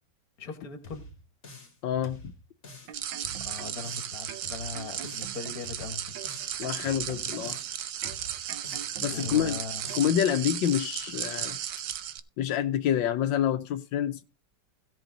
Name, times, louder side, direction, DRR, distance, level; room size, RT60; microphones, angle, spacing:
voice 1, 0.4-1.1 3.4-6.1 9.1-9.8, left 4 dB, 55° left, 1.9 m, -39 dB
sound 1, 0.8-1.8 2.0-3.0 3.2-4.2 4.4-5.4 5.6-6.6 6.8-7.8 8.0-9.0 9.2-10.2, left 1 dB, 40° left, 2.1 m, -47 dB
voice 2, 1.8-2.3 6.6-7.6 9.0-9.6 9.9-11.6 12.4-14.2, left 10 dB, 85° left, 1.4 m, -27 dB
sound 2, 2.7-3.9 4.3-5.8 6.1-7.7 8.0-9.5 9.9-10.1, right 9 dB, 90° right, 1.6 m, -45 dB
sound 3, 2.9-12.2, right 10 dB, 65° right, 1.2 m, -35 dB
16.5 x 5.9 x 3.9 m
omnidirectional pair, 2.0 m